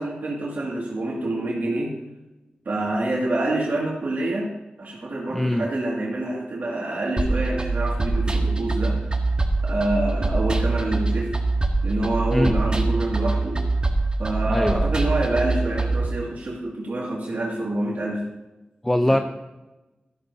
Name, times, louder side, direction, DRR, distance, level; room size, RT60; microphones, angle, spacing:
voice 1, 0.0-2.0 2.7-4.5 4.8-9.1 9.6-11.3 11.8-13.6 14.2-18.3 19.0-19.2, right 1 dB, 65° right, -4 dB, 2.2 m, -27 dB
voice 2, 5.3-5.7 12.3-12.6 14.5-14.8 18.8-19.2, left 1 dB, 10° left, 6 dB, 0.5 m, -21 dB
sound 1, 7.2-16.1, right 3 dB, 30° right, 1.3 m, -24 dB
13.0 x 12.5 x 2.7 m, 1.0 s
wide cardioid pair, 115°, 3 cm